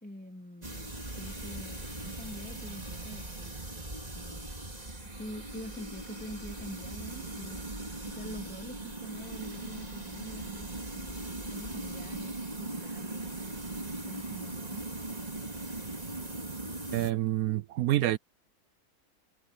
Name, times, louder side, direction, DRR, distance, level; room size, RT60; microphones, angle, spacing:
voice 1, 0.0-3.6 4.1-4.5 5.2-7.8 8.0-13.4 14.0-14.8, left 1 dB, 5° left, 2.9 m, -46 dB
sound 1, 0.6-17.1, right 2 dB, 25° right, 2.6 m, -39 dB
voice 2, 16.9-18.2, right 14 dB, 75° right, 1.0 m, -27 dB
omnidirectional pair, 1.6 m